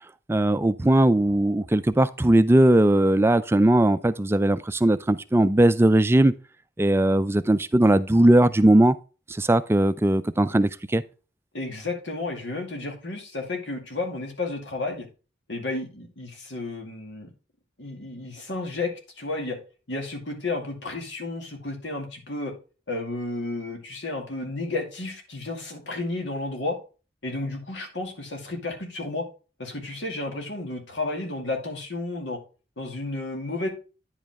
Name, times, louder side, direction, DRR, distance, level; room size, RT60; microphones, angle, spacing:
voice 1, 0.3-6.3 6.8-9.0 9.4-11.0, right 1 dB, 15° right, 0.3 m, -19 dB
voice 2, 11.5-15.1 15.5-17.3 17.8-19.6 19.9-22.5 22.9-26.8 27.2-29.2 29.6-32.4 32.8-33.7, left 2 dB, 90° left, 2.2 m, -32 dB
9.8 x 5.4 x 3.5 m
head